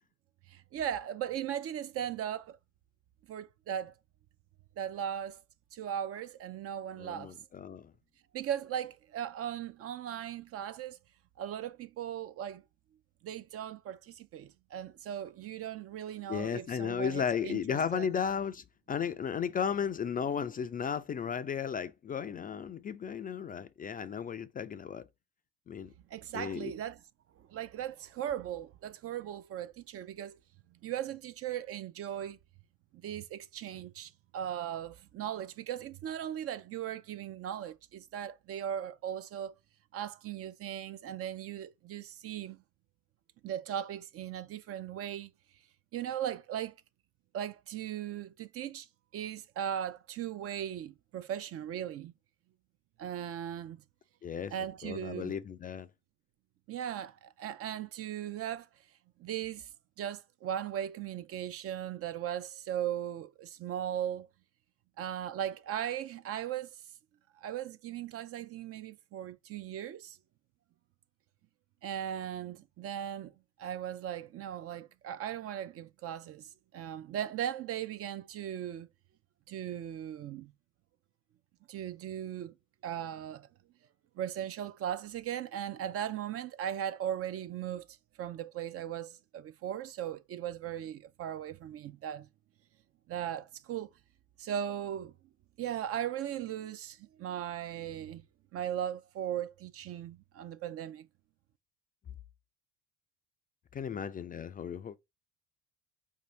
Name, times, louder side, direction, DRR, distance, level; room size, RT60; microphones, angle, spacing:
voice 1, 0.5-2.6 3.3-3.9 4.8-5.4 5.7-7.3 8.3-11.0 11.4-12.6 13.2-18.1 26.1-27.0 27.4-30.4 30.8-32.4 32.9-39.6 39.9-42.6 43.4-45.3 45.9-46.7 47.3-48.9 49.1-52.1 53.0-53.8 54.5-55.3 56.7-58.7 59.2-59.7 60.0-64.3 65.0-66.8 67.4-70.2 71.8-73.3 73.6-78.9 79.5-80.5 81.7-82.5 82.8-83.5 84.2-87.9 88.2-92.3 93.1-93.9 94.4-95.1 95.6-98.2 98.5-101.1, right 10 dB, 45° right, 0.4 m, -38 dB
voice 2, 7.0-7.9 16.3-25.0 25.7-25.9 26.3-26.7 54.2-54.5 54.8-55.9 103.7-104.9, left 7 dB, 25° left, 0.3 m, -34 dB
4.7 x 2.7 x 3.1 m
hypercardioid pair, 70°, 34 cm